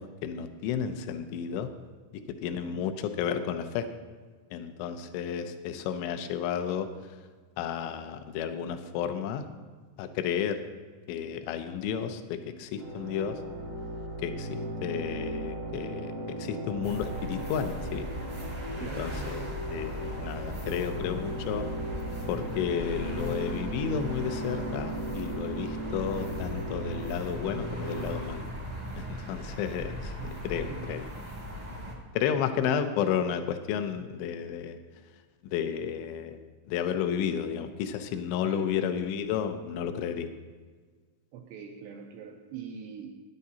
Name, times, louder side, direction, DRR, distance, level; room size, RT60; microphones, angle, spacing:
voice 1, 0.0-1.7 2.1-3.9 4.5-7.2 7.6-9.5 10.0-10.6 11.1-13.4 14.2-18.1 18.8-21.7 22.3-28.5 28.9-30.2 30.4-31.1 32.1-34.8 35.4-36.4 36.7-40.3, left 8 dB, 85° left, 8 dB, 2.5 m, -32 dB
sound 1, 12.8-28.1, right 1 dB, 60° right, 1.0 m, -37 dB
sound 2, 16.8-31.9, equal, 40° right, 0.6 m, -38 dB
voice 2, 30.7-31.0 31.8-32.7 38.4-38.7 41.3-43.1, right 7 dB, 90° right, 2 dB, 2.5 m, -43 dB
16.0 x 10.5 x 2.8 m, 1.5 s
omnidirectional pair, 5.8 m